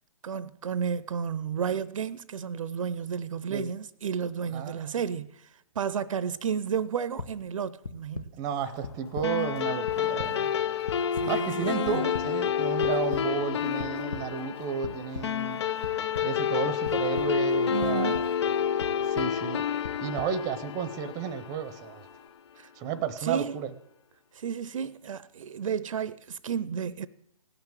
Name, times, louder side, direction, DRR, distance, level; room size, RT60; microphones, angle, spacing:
voice 1, 0.2-5.5 5.8-8.3 11.2-12.1 17.7-18.2 22.6-22.7 23.2-23.6 24.3-27.1, right 7 dB, 60° right, 0.6 m, -32 dB
voice 2, 4.5-4.8 8.4-10.5 11.3-15.6 16.2-18.2 19.0-19.6 20.0-22.1 22.8-23.7, right 7 dB, 20° right, 0.7 m, -32 dB
sound 1, 7.2-7.3 7.8-8.3 8.8-9.3 9.6-10.3 10.9-11.3 11.8-12.3 12.8-13.2 13.8-14.2 14.8-15.2 15.8-16.2 16.8-17.3 17.8-18.2 18.8-19.3 19.8-20.3, left 4 dB, 70° left, 1.4 m, -37 dB
sound 2, 8.5-22.3, left 4 dB, 30° left, 3.0 m, -54 dB
sound 3, 9.2-22.0, left 8 dB, 50° left, 0.4 m, -29 dB
17.5 x 6.0 x 9.0 m
hypercardioid pair, 150°, 19 cm